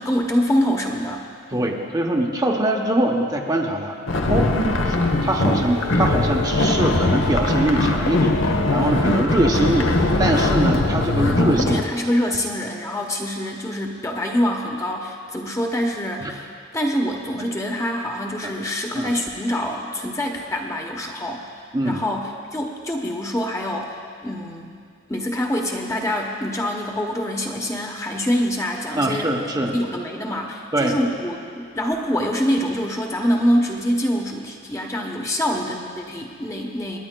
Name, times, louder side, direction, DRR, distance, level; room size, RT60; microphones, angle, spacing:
voice 1, 0.0-1.7 11.2-16.5 16.7-21.5 21.8-24.7 25.1-29.3 29.7-37.0, equal, 15° left, 1 dB, 0.9 m, -25 dB
voice 2, 1.5-4.0 4.3-4.5 4.9-5.0 5.2-11.8 16.2-16.3 18.9-19.1 21.7-22.0 29.0-29.7 30.7-30.9, right 1 dB, 20° right, 0 dB, 0.7 m, -22 dB
sound 1, 4.1-11.8, left 2 dB, 75° left, 0.8 m, -20 dB
26.5 x 9.7 x 2.2 m, 2.2 s
head